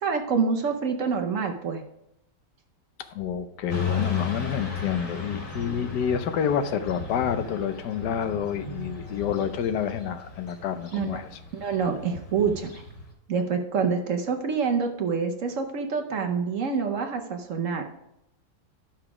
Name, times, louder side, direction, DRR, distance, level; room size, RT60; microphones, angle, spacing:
voice 1, 0.0-1.8 10.9-11.1 11.5-12.8 13.3-17.9, right 5 dB, 55° right, 4 dB, 1.0 m, -26 dB
voice 2, 3.0-11.3, left 8 dB, 75° left, 10 dB, 1.2 m, -28 dB
Motorcycle / Traffic noise roadway noise, 3.7-13.1, left 5 dB, 50° left, 2.6 m, -35 dB
12.0 x 6.0 x 4.8 m, 0.85 s
omnidirectional pair, 1.9 m